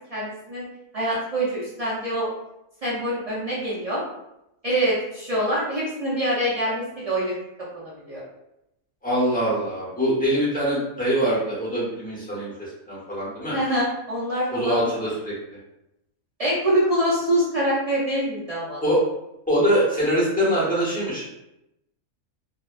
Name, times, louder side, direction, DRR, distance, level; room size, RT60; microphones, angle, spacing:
voice 1, 0.1-0.7 0.9-2.3 2.8-4.0 4.6-7.3 7.8-8.2 13.4-15.0 16.4-18.8, right 1 dB, 55° right, -8 dB, 0.4 m, -25 dB
voice 2, 9.0-13.6 14.5-15.3 18.8-19.0 19.5-21.2, equal, 5° left, -8 dB, 0.8 m, -23 dB
2.6 x 2.2 x 2.4 m, 0.87 s
omnidirectional pair, 1.6 m